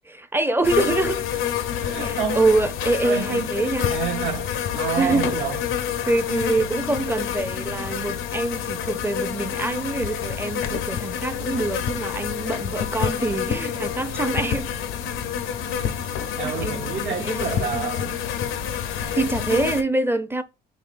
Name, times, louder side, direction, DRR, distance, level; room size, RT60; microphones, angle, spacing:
voice 1, 0.1-1.3 2.0-3.9 5.0-5.4 6.1-14.7 16.1-17.9 18.9-20.4, right 2 dB, 10° right, 0.5 m, -25 dB
sound 1, 0.6-19.8, left 8 dB, 85° left, 0.6 m, -28 dB
voice 2, 1.8-2.4 3.0-5.6 16.4-18.2, right 8 dB, 65° right, 0.8 m, -29 dB
5.3 x 3.1 x 2.4 m
cardioid pair, 90°, 20 cm